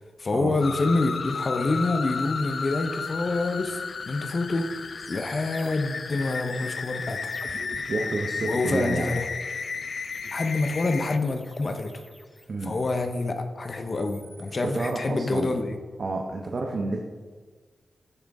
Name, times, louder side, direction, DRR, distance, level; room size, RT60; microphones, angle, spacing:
voice 1, 0.0-7.6 8.4-9.2 10.3-11.9 12.6-15.8, left 3 dB, 50° left, 6 dB, 0.8 m, -27 dB
sound 1, 0.6-11.2, left 5 dB, 65° left, 0.3 m, -33 dB
sound 2, 5.0-7.8 10.1-12.9 13.8-15.0, equal, 5° left, 0.8 m, -49 dB
voice 2, 7.9-9.1 12.5-12.8 14.6-15.6 16.0-17.0, right 3 dB, 60° right, 1 dB, 0.8 m, -29 dB
14.0 x 5.1 x 3.6 m, 1.5 s
cardioid pair, 75°, 0 cm